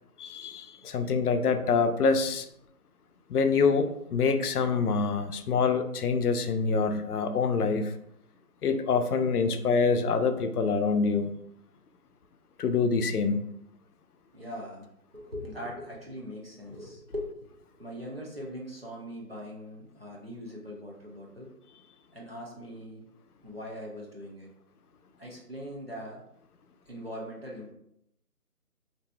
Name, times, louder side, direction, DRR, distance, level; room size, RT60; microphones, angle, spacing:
voice 1, 0.2-2.5 3.3-7.9 8.6-11.3 12.6-13.4, left 5 dB, 80° left, 8 dB, 0.5 m, -26 dB
voice 2, 14.3-21.5 22.1-23.1 23.4-24.5 25.2-26.2 26.9-27.7, equal, 40° right, -3 dB, 0.5 m, -41 dB
2.6 x 2.2 x 3.2 m, 0.77 s
hypercardioid pair, 175°, 45 cm